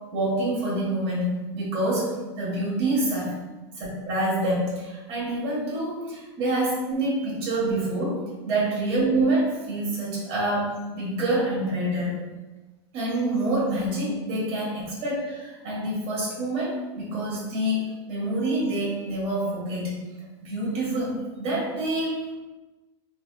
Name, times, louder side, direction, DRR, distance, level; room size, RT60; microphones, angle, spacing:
voice 1, 0.1-3.3 4.1-12.2 12.9-20.0 20.4-22.4, right 1 dB, 40° right, -6 dB, 1.3 m, -27 dB
3.3 x 2.5 x 2.2 m, 1.2 s
supercardioid pair, 140°, 16 cm